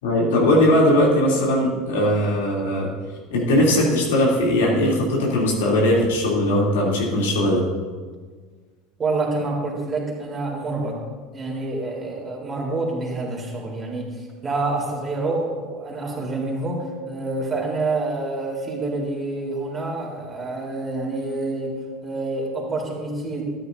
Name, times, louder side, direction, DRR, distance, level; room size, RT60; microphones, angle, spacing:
voice 1, 0.0-2.9 3.3-7.6, left 1 dB, 70° left, -4 dB, 3.1 m, -19 dB
voice 2, 9.0-11.0 11.3-21.8 22.0-23.4, right 2 dB, 25° right, -2 dB, 3.8 m, -27 dB
14.0 x 12.0 x 2.7 m, 1.5 s
figure-of-eight pair, 75°, 0 cm